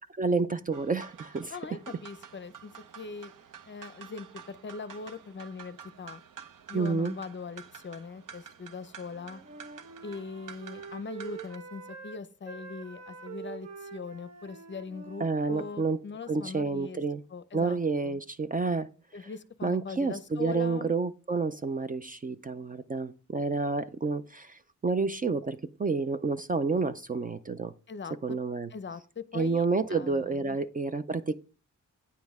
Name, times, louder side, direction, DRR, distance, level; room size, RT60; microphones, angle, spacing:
voice 1, 0.2-1.5 6.7-7.1 15.2-16.0 16.3-17.2 17.5-18.9 19.6-27.7 28.2-28.7 29.3-31.4, right 4 dB, 25° right, 0.4 m, -29 dB
sound 1, 0.7-11.6, right 7 dB, 75° right, 0.8 m, -50 dB
voice 2, 1.5-3.3 3.7-6.2 6.7-9.4 10.0-17.0 17.3-17.8 18.0-18.2 19.1-20.9 27.9-28.2 28.7-30.6, left 5 dB, 35° left, 0.5 m, -41 dB
Wind instrument woodwind instrument, 9.0-15.9, right 6 dB, 55° right, 1.2 m, -46 dB
9.4 x 7.4 x 3.5 m
wide cardioid pair, 145°, 32 cm